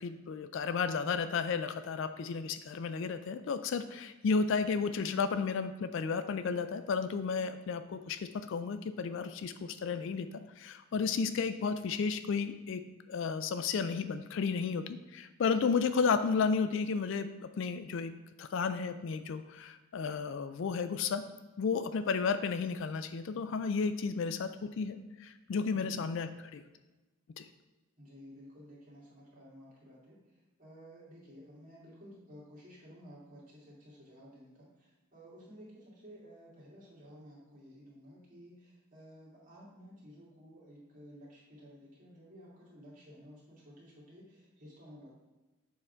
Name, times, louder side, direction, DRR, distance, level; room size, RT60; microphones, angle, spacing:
voice 1, 0.0-10.3 10.6-12.8 13.1-18.1 18.4-21.2 21.6-26.6 27.4-27.5, left 5 dB, 55° left, 10 dB, 0.3 m, -33 dB
voice 2, 25.7-26.1 28.0-45.1, equal, 35° right, -6 dB, 2.1 m, -54 dB
6.9 x 3.7 x 4.4 m, 1.1 s
head